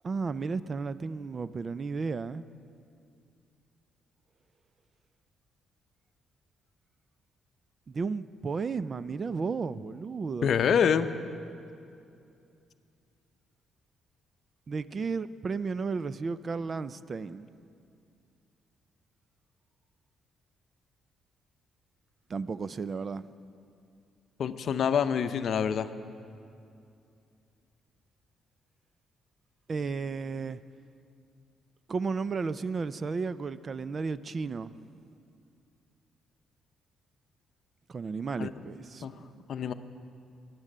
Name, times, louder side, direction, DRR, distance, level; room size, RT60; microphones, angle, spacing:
voice 1, 0.0-2.5 7.9-10.5 14.7-17.5 22.3-23.3 29.7-30.6 31.9-35.0 37.9-39.3, right 4 dB, 40° right, 0.4 m, -33 dB
voice 2, 10.4-11.1 24.4-25.9 38.4-38.6 39.0-39.1 39.5-39.7, left 7 dB, 60° left, 0.6 m, -26 dB
14.0 x 10.5 x 7.4 m
cardioid pair, 90°, 0 cm